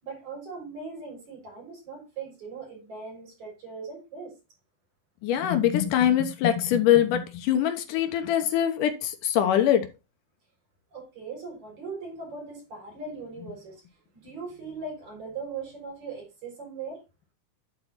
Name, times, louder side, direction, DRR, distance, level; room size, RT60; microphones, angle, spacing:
voice 1, 0.0-4.3 10.9-13.8 14.1-17.0, right 4 dB, 60° right, 5.7 m, -39 dB
voice 2, 5.2-9.9, left 10 dB, 85° left, 2.7 m, -23 dB
10.5 x 4.5 x 4.0 m
omnidirectional pair, 3.6 m